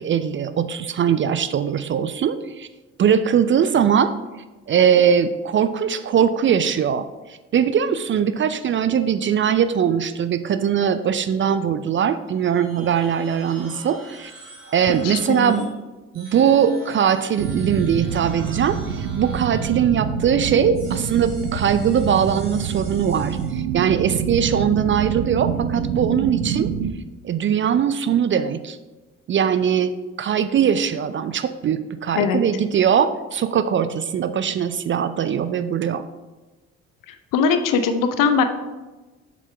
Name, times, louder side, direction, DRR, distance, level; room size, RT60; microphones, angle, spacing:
voice 1, 0.0-2.7 3.0-4.2 4.7-14.3 14.7-15.6 16.1-26.7 27.2-28.8 29.3-36.1, right 8 dB, 30° right, 12 dB, 0.4 m, -21 dB
sound 1, 12.3-15.7 16.1-20.1 20.7-23.5, right 2 dB, 55° right, 2.9 m, -44 dB
voice 2, 14.8-15.7 32.2-32.4 37.1-38.4, left 5 dB, 55° left, 9 dB, 0.9 m, -21 dB
sound 2, 17.4-26.9, right 7 dB, 70° right, 0.7 m, -27 dB
8.0 x 7.3 x 3.4 m, 1.2 s
figure-of-eight pair, 45°, 38 cm